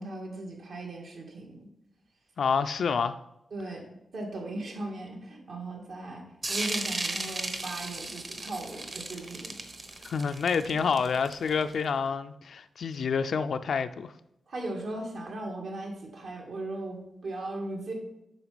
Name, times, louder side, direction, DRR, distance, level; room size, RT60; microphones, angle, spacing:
voice 1, 0.0-1.7 3.5-3.8 4.1-9.5 10.7-10.8 14.5-17.9, right 2 dB, 70° right, 2.2 m, -38 dB
voice 2, 2.4-3.2 10.0-14.1, left 6 dB, 65° left, 0.4 m, -28 dB
sound 1, 6.4-11.7, right 2 dB, 35° right, 1.0 m, -35 dB
7.9 x 5.8 x 5.1 m
wide cardioid pair, 125°, 0 cm